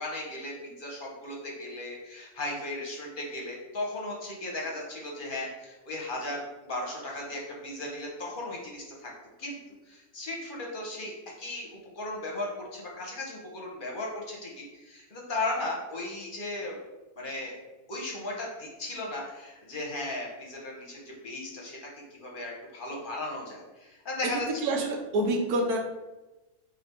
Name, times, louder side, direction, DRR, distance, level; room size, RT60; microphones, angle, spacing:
voice 1, 0.0-9.1 9.4-9.6 9.9-11.1 11.4-11.7 11.9-16.8 17.2-17.5 17.9-24.8, left 2 dB, 40° left, -2 dB, 0.8 m, -36 dB
voice 2, 24.6-25.8, right 1 dB, 85° right, 2 dB, 1.2 m, -27 dB
3.3 x 2.6 x 4.2 m, 1.1 s
omnidirectional pair, 1.6 m